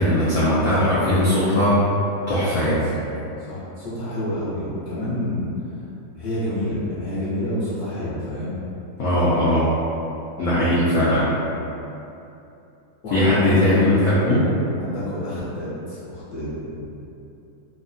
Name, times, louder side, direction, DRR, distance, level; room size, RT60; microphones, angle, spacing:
voice 1, 0.0-1.8 2.3-3.0 9.0-9.7 10.4-11.3 13.1-14.5, left 1 dB, 85° left, -10 dB, 0.7 m, -19 dB
voice 2, 3.4-5.9 6.1-8.6 13.0-13.8 14.7-16.9, left 1 dB, 60° left, -10 dB, 1.1 m, -28 dB
3.4 x 2.1 x 2.5 m, 2.8 s
omnidirectional pair, 2.2 m